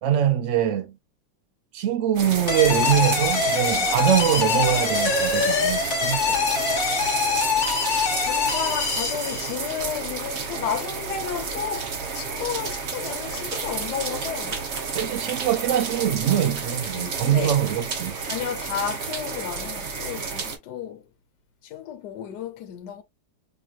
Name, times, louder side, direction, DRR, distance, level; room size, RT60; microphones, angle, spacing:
voice 1, 0.0-0.9 1.7-6.4 15.0-18.2, right 10 dB, 85° right, 0.6 m, -23 dB
sound 1, 2.1-20.6, right 5 dB, 50° right, 0.9 m, -31 dB
sound 2, 2.5-9.8, left 4 dB, 45° left, 1.3 m, -24 dB
voice 2, 8.2-14.6 16.9-17.6 18.2-21.1 21.6-23.0, left 8 dB, 70° left, 1.3 m, -32 dB
5.0 x 3.0 x 2.4 m
omnidirectional pair, 2.0 m